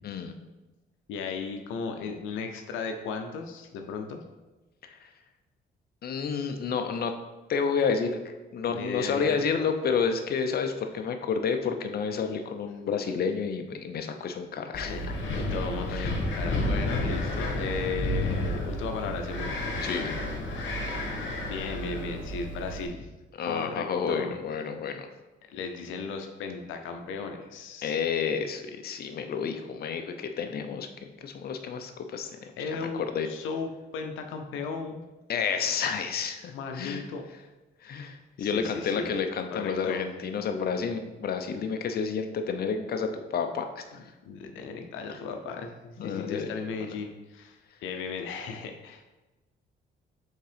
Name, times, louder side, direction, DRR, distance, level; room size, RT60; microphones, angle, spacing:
voice 1, 0.0-0.3 4.8-5.1 6.0-7.2 7.5-15.0 15.9-16.1 19.8-20.1 23.3-25.1 27.8-32.5 32.8-33.3 35.3-37.0 37.8-43.8 46.0-46.5, left 6 dB, 50° left, 6 dB, 0.6 m, -30 dB
voice 2, 1.1-4.2 8.7-9.4 14.7-15.0 15.3-19.5 21.5-23.1 23.4-24.3 25.5-27.9 32.6-35.1 36.5-37.2 38.4-39.1 39.5-40.0 44.2-49.1, left 5 dB, 90° left, 5 dB, 0.6 m, -36 dB
Wind, 14.7-22.9, left 1 dB, 65° left, 1.3 m, -31 dB
5.5 x 3.7 x 5.0 m, 1.1 s
cardioid pair, 90°, 20 cm